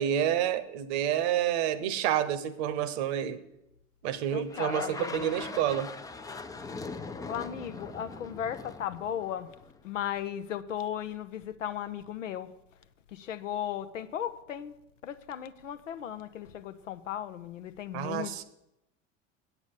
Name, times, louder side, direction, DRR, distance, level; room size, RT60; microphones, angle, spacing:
voice 1, 0.0-3.4 4.0-5.9 17.9-18.4, right 10 dB, 55° right, 0.9 m, -29 dB
voice 2, 4.3-5.5 7.3-9.5 9.8-12.5 13.1-14.8 15.0-18.4, left 10 dB, 75° left, 0.7 m, -36 dB
sound 1, 4.5-9.8, left 3 dB, 10° left, 0.5 m, -41 dB
8.3 x 8.1 x 7.0 m
figure-of-eight pair, 75°, 38 cm